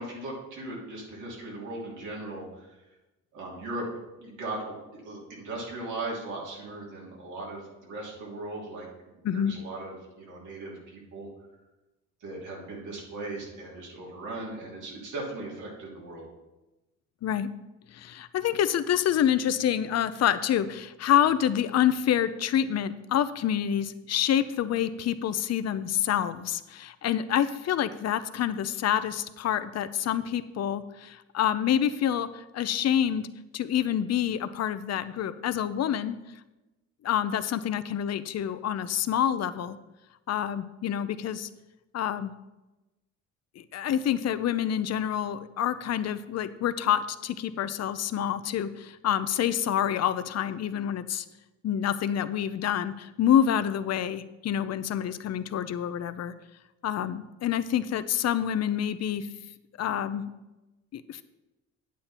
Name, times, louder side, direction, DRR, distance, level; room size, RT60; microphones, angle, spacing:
voice 1, 0.0-2.8 3.3-3.9 4.2-8.9 9.3-11.3 12.2-16.3, right 2 dB, 85° right, -4 dB, 3.3 m, -38 dB
voice 2, 17.9-33.3 33.5-36.2 37.0-39.8 40.3-41.5 41.9-42.3 43.6-51.2 51.6-56.3 56.8-59.3 59.8-60.3 60.9-61.2, left 10 dB, 55° left, 12 dB, 0.7 m, -27 dB
8.8 x 8.5 x 4.4 m, 1.0 s
cardioid pair, 90°, 30 cm